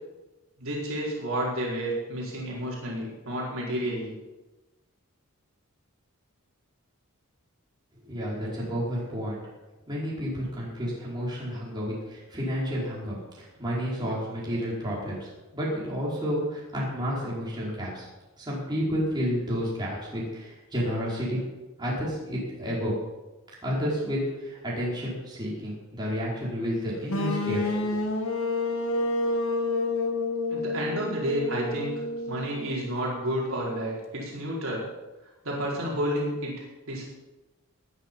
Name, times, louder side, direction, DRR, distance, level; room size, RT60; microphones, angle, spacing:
voice 1, 0.6-4.1 30.5-31.9 32.3-34.8 35.4-36.5 36.9-37.0, equal, 65° right, -4 dB, 4.7 m, -30 dB
voice 2, 8.0-9.4 9.9-18.1 18.4-21.4 21.8-22.9 23.6-27.9, equal, 20° right, -6 dB, 4.9 m, -31 dB
sound 1, 27.1-33.0, left 2 dB, 60° left, 2.0 m, -29 dB
19.0 x 9.9 x 5.5 m, 1.1 s
head